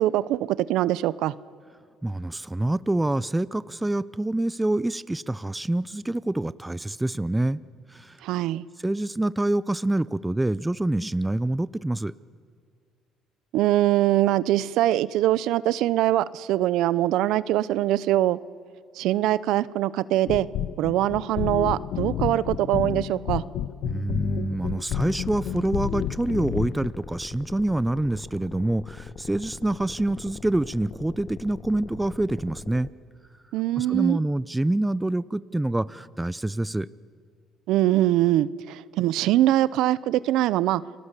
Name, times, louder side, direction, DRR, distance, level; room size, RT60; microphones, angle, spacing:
voice 1, 0.0-1.3 8.2-8.6 13.5-18.4 19.0-20.5 20.8-23.4 33.5-34.2 37.7-40.8, right 14 dB, 75° right, 19 dB, 0.6 m, -23 dB
voice 2, 2.0-7.6 7.9-8.2 8.8-12.1 23.8-32.9 33.8-36.9, right 1 dB, 10° right, 18 dB, 0.6 m, -26 dB
sound 1, 20.2-26.9, left 10 dB, 70° left, 0.9 m, -31 dB
sound 2, 24.9-32.9, left 6 dB, 50° left, 1.2 m, -41 dB
30.0 x 19.5 x 8.3 m, 2.1 s
cardioid pair, 100°, 0 cm